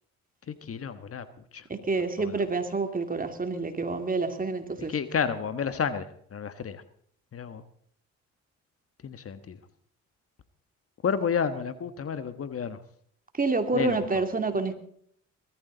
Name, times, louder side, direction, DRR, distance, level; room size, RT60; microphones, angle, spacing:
voice 1, 0.5-1.2 1.5-1.6 2.2-2.3 4.9-6.8 7.3-7.6 9.0-9.6 11.0-12.8 13.7-14.2, left 6 dB, 45° left, 11 dB, 1.3 m, -31 dB
voice 2, 1.7-4.9 13.3-14.8, right 3 dB, 25° right, 7 dB, 2.5 m, -28 dB
21.0 x 14.0 x 3.9 m, 0.63 s
supercardioid pair, 75°, 31 cm